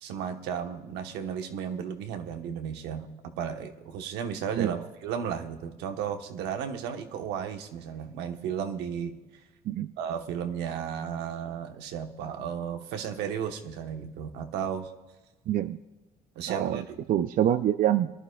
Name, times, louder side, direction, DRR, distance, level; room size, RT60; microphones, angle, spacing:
voice 1, 0.0-3.1 3.4-9.2 10.0-14.9 16.3-17.0, right 8 dB, 90° right, 5 dB, 1.2 m, -34 dB
voice 2, 15.5-15.8 16.5-18.1, right 11 dB, 55° right, 11 dB, 0.5 m, -26 dB
23.5 x 11.5 x 2.3 m, 1.2 s
cardioid pair, 110°, 17 cm